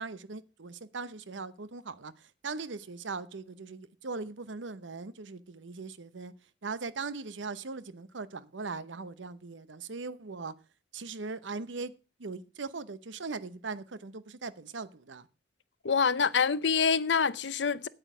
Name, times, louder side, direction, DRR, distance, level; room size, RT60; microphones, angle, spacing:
voice 1, 0.0-6.3 6.6-10.5 10.9-11.9 12.2-15.3, right 4 dB, 85° right, 0.8 m, -40 dB
voice 2, 15.8-17.9, left 6 dB, 75° left, 0.6 m, -26 dB
9.1 x 8.7 x 6.1 m
head